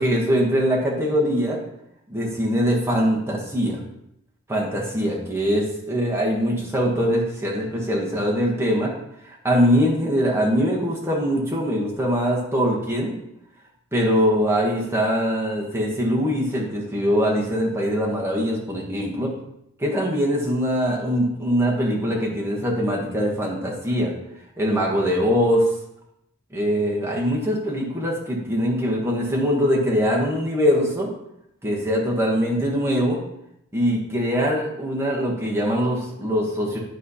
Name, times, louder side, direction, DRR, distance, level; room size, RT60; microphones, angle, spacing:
voice 1, 0.0-1.6 2.1-3.8 4.5-8.9 9.4-13.1 13.9-19.3 19.8-24.1 24.6-25.6 26.5-31.1 31.6-33.2 33.7-36.8, equal, 10° right, -3 dB, 1.3 m, -22 dB
9.3 x 3.2 x 5.6 m, 0.79 s
head